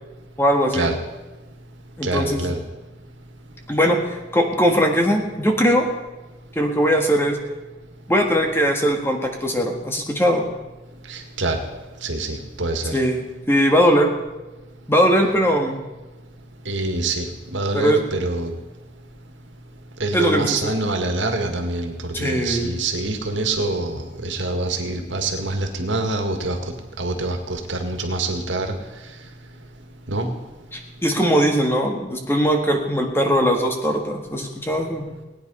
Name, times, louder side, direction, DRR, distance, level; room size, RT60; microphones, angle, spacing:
voice 1, 0.4-0.9 2.0-2.4 3.7-5.9 6.5-7.4 8.1-10.5 12.9-14.1 14.9-15.8 17.7-18.0 20.1-20.6 22.1-22.7 30.7-35.0, equal, 15° left, 3 dB, 1.6 m, -20 dB
voice 2, 2.0-2.6 11.1-11.6 12.0-12.9 16.7-17.3 17.5-18.5 20.0-26.6 27.0-28.7 30.1-30.3, right 2 dB, 85° right, 4 dB, 2.0 m, -25 dB
19.0 x 9.4 x 5.6 m, 1.1 s
head